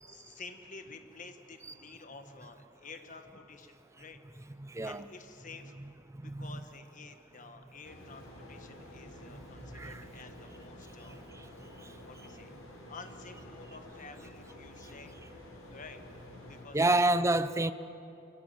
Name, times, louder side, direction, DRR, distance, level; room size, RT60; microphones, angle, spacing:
voice 1, 0.1-4.2 4.8-5.7 6.1-11.2 12.0-12.5 12.9-15.1 15.7-16.0 16.4-17.1, left 4 dB, 40° left, 1.4 m, -50 dB
voice 2, 4.6-5.0 6.2-6.5 9.3-9.4 9.7-10.0 11.1-11.4 16.7-17.7, right 2 dB, 15° right, 0.5 m, -29 dB
sound 1, 7.8-16.6, left 1 dB, 75° left, 5.7 m, -50 dB
24.5 x 17.5 x 7.8 m
head